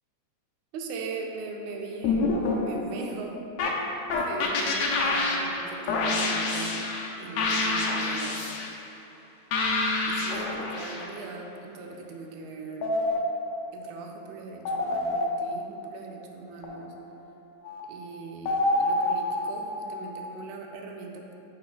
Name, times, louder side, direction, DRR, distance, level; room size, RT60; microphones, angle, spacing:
voice 1, 0.7-3.3 4.1-6.8 7.2-8.4 10.1-12.9 13.7-16.9 17.9-21.4, right 4 dB, 80° right, 1 dB, 1.9 m, -40 dB
sound 1, 2.0-3.1 3.6-7.1 7.4-8.7 9.5-11.1 12.8-13.7 14.7-15.7 16.6-16.9 17.6-17.8 18.5-20.2, left 2 dB, 75° left, 1.8 m, -27 dB
8.5 x 5.3 x 2.3 m, 2.8 s
omnidirectional pair, 3.5 m